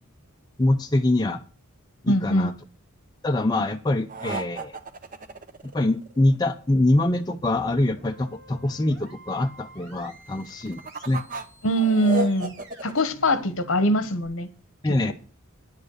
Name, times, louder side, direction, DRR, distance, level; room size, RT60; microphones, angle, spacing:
voice 1, 0.6-1.4 2.0-2.5 3.2-4.8 5.6-11.2 14.8-15.1, left 2 dB, 20° left, 0.5 m, -24 dB
voice 2, 2.1-2.5 11.6-12.5 12.8-14.5, equal, 60° left, 1.2 m, -22 dB
sound 1, 4.1-6.3 10.4-13.0, right 2 dB, 40° right, 0.9 m, -33 dB
sound 2, 7.1-14.3, right 3 dB, 55° right, 7.9 m, -50 dB
9.9 x 7.3 x 6.5 m
head